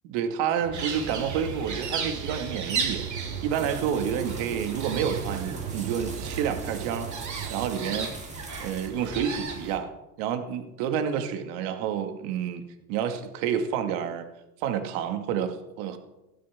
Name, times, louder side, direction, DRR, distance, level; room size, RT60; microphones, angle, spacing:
voice 1, 0.1-7.1 7.5-8.1 8.6-9.9 10.2-12.6 12.9-14.3 14.6-16.0, right 8 dB, 70° right, 7 dB, 2.0 m, -29 dB
sound 1, 0.6-7.7, right 9 dB, 90° right, 1.1 m, -38 dB
sound 2, 0.7-9.8, right 5 dB, 40° right, 3.7 m, -36 dB
sound 3, 3.5-8.9, right 1 dB, 15° right, 2.8 m, -43 dB
18.5 x 12.5 x 3.6 m, 0.97 s
hypercardioid pair, 80°, 45 cm